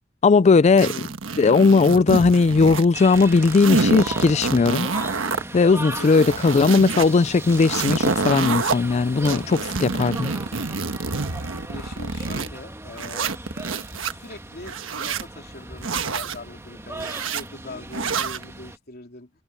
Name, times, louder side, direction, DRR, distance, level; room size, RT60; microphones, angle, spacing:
voice 1, 0.2-0.9 1.4-4.9 5.5-10.3, left 4 dB, 35° left, 0.3 m, -17 dB
voice 2, 0.7-1.1 6.0-6.3 11.7-13.3 14.1-19.3, left 2 dB, 50° left, 3.3 m, -41 dB
sound 1, 0.8-2.9 3.1-5.4 5.8-7.1 7.5-8.7 9.2-12.5 13.0-14.1 14.6-15.3 15.8-16.4 17.0-17.4 17.9-18.4, right 4 dB, 80° right, 1.3 m, -27 dB
sound 2, 2.9-18.8, right 2 dB, 15° right, 1.9 m, -38 dB
head